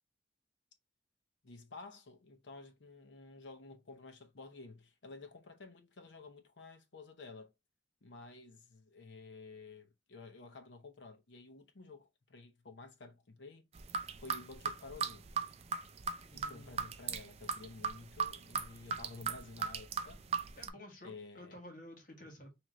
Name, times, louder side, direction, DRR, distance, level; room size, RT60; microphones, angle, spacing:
voice 1, 1.4-7.5 8.0-13.6 14.2-15.2 16.3-20.2 21.0-21.6, left 3 dB, 70° left, 0.8 m, -52 dB
sound 1, 13.8-20.7, right 6 dB, 35° right, 0.4 m, -37 dB
voice 2, 16.2-16.8 20.6-22.5, left 1 dB, 45° left, 1.5 m, -52 dB
3.7 x 3.1 x 3.0 m
head